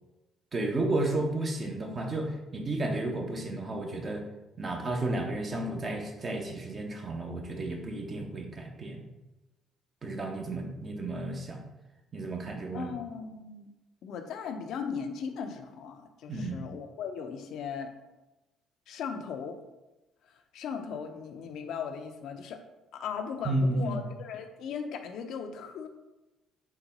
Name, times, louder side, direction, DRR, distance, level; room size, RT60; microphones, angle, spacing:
voice 1, 0.5-4.2 4.6-9.1 10.0-11.6 12.1-12.9 16.3-16.7 23.4-24.0, right 2 dB, 40° right, 2 dB, 0.8 m, -32 dB
voice 2, 12.7-13.7 14.0-17.9 18.9-19.5 20.5-22.6 22.9-25.9, left 6 dB, 70° left, 5 dB, 0.4 m, -37 dB
3.9 x 2.2 x 4.0 m, 1.0 s
supercardioid pair, 65°, 0 cm